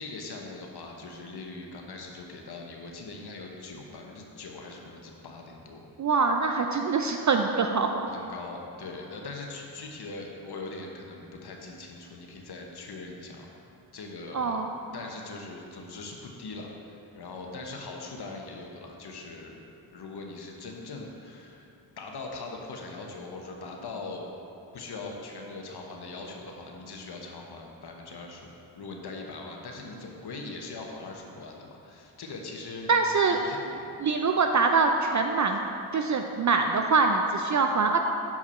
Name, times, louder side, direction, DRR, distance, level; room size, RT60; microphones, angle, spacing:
voice 1, 0.0-5.9 8.1-13.5 13.9-14.6 14.9-19.6 19.9-21.7 22.0-24.3 24.7-32.9 33.3-33.9, left 3 dB, 55° left, 1 dB, 1.0 m, -41 dB
voice 2, 6.0-8.1 14.3-14.7 32.9-33.4 33.7-35.6 35.9-38.0, right 4 dB, 40° right, 4 dB, 0.5 m, -24 dB
7.2 x 4.7 x 4.3 m, 2.9 s
supercardioid pair, 50°, 47 cm